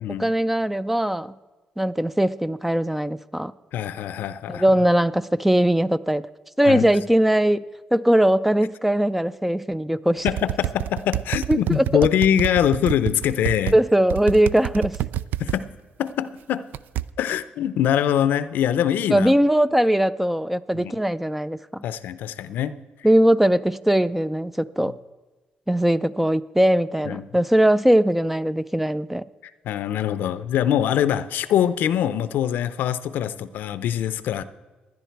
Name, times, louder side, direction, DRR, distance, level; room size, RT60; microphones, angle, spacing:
voice 1, 0.2-1.3 1.8-3.5 4.5-6.3 6.6-7.6 7.9-10.3 11.5-12.1 13.7-15.0 19.1-21.8 23.0-24.9 25.7-29.2, right 1 dB, 5° right, 15 dB, 0.4 m, -20 dB
voice 2, 3.7-4.7 6.6-6.9 10.2-13.7 15.4-15.7 16.0-16.6 17.2-19.3 20.7-20.9 21.8-22.7 27.0-27.2 29.6-34.4, left 10 dB, 80° left, 14 dB, 0.6 m, -23 dB
sound 1, 10.3-13.8 14.1-15.6 16.7-17.0, right 13 dB, 75° right, 0.4 m, -27 dB
16.5 x 11.0 x 4.6 m, 1.3 s
cardioid pair, 95°, 3 cm